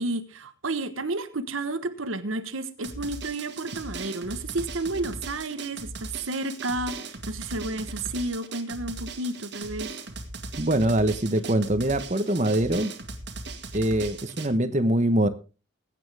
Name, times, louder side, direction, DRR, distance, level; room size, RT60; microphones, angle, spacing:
voice 1, 0.0-10.0, right 2 dB, 80° right, 1.2 m, -31 dB
Drum, 2.8-14.5, right 3 dB, 55° right, 2.0 m, -38 dB
voice 2, 10.6-12.9 13.7-15.3, right 1 dB, 35° right, 1.2 m, -23 dB
21.0 x 8.9 x 3.5 m
head